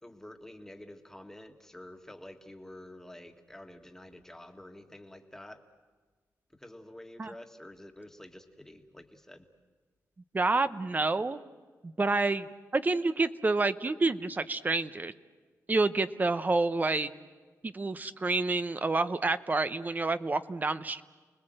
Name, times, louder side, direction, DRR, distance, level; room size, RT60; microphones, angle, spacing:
voice 1, 0.0-5.7 6.6-9.5, left 1 dB, 5° left, 5 dB, 1.7 m, -49 dB
voice 2, 10.3-11.4 11.8-15.1 15.7-17.1 17.6-21.0, right 3 dB, 30° right, 13 dB, 0.8 m, -28 dB
30.0 x 20.0 x 7.8 m, 1.4 s
cardioid pair, 95°, 6 cm